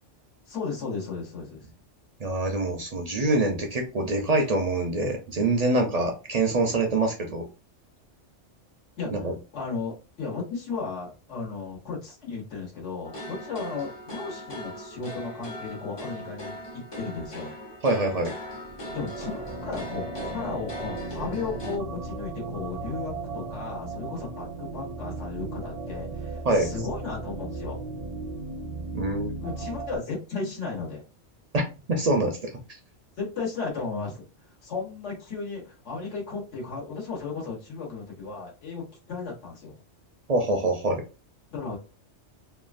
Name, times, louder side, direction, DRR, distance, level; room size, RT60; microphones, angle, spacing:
voice 1, 0.5-1.7 9.0-9.1 9.5-17.5 18.9-27.8 29.4-31.0 33.2-34.2 34.6-39.8 41.5-41.8, left 4 dB, 75° left, -2 dB, 1.4 m, -35 dB
voice 2, 2.2-7.5 9.1-9.3 17.8-18.3 26.4-26.7 28.9-29.3 31.5-31.6 31.9-32.5 40.3-41.0, right 2 dB, 55° right, 3 dB, 0.4 m, -25 dB
sound 1, 13.0-21.8, equal, 35° left, 0.4 m, -39 dB
sound 2, 18.4-30.0, right 3 dB, 90° right, 0.9 m, -36 dB
2.9 x 2.3 x 2.5 m, 0.31 s
omnidirectional pair, 1.2 m